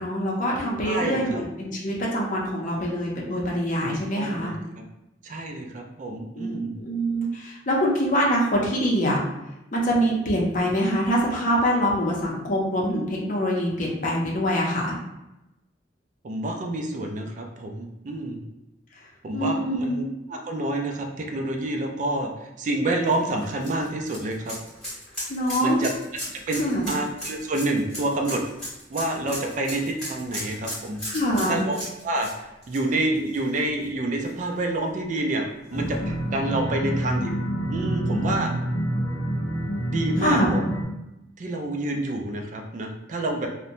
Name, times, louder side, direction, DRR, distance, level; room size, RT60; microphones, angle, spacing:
voice 1, 0.0-4.5 6.4-9.2 9.7-15.0 19.3-20.1 25.3-25.8 26.6-26.9 31.1-31.6 40.2-40.5, equal, 45° left, -3 dB, 0.5 m, -24 dB
voice 2, 0.8-1.4 3.8-4.8 5.2-6.7 16.2-18.4 19.2-20.0 20.3-24.6 25.6-25.9 26.3-26.6 26.9-28.4 28.9-31.0 31.5-31.8 32.0-37.4 37.7-38.5 39.9-40.6 41.4-43.5, right 2 dB, 40° right, 2 dB, 0.3 m, -28 dB
sound 1, 23.1-33.8 34.2-34.3 35.8-35.9, equal, 5° left, 1.3 m, -36 dB
sound 2, 35.7-40.8, right 1 dB, 80° left, 0.7 m, -27 dB
2.8 x 2.1 x 2.5 m, 0.93 s
head